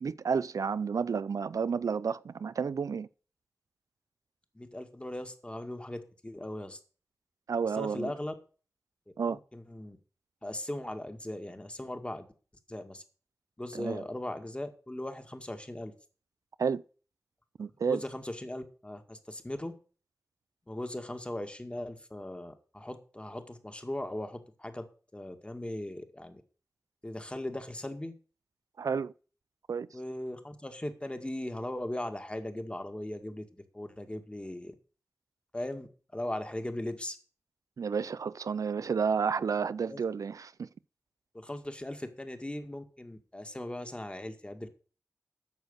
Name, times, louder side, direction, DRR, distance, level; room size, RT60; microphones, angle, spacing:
voice 1, 0.0-3.1 7.5-8.1 9.2-9.4 13.7-14.0 16.6-16.8 17.6-18.0 28.8-29.1 29.7-29.9 37.8-40.7, right 6 dB, 80° right, 0.4 m, -31 dB
voice 2, 4.5-6.8 7.6-8.3 9.3-10.0 10.4-12.3 12.7-13.0 13.6-15.9 17.8-19.7 20.7-24.8 25.1-26.4 27.0-28.1 29.9-34.7 35.5-37.2 39.9-40.0 41.3-44.7, left 1 dB, 20° left, 2.0 m, -39 dB
9.5 x 6.5 x 8.1 m
cardioid pair, 50°, 6 cm